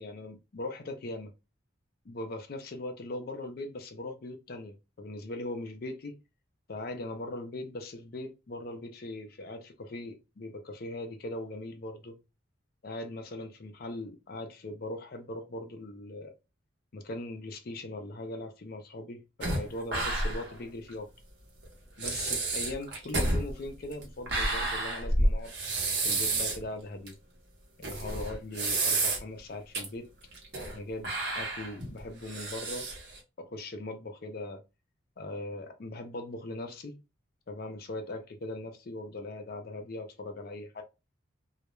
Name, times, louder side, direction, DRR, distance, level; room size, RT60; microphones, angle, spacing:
voice 1, 0.0-1.3 2.1-6.2 6.7-12.1 12.8-16.3 16.9-21.1 22.0-25.5 26.0-27.2 27.8-30.1 30.7-32.9 33.4-34.6 35.2-37.0 37.5-40.8, left 2 dB, 50° left, 0.4 m, -40 dB
sound 1, 19.4-20.6 20.9-21.0 21.6-21.7 22.0-26.6 27.1-27.2 27.8-29.4 29.7-29.8 30.3-30.8 31.0-33.2, right 2 dB, 55° right, 0.8 m, -30 dB
2.3 x 2.1 x 2.9 m
head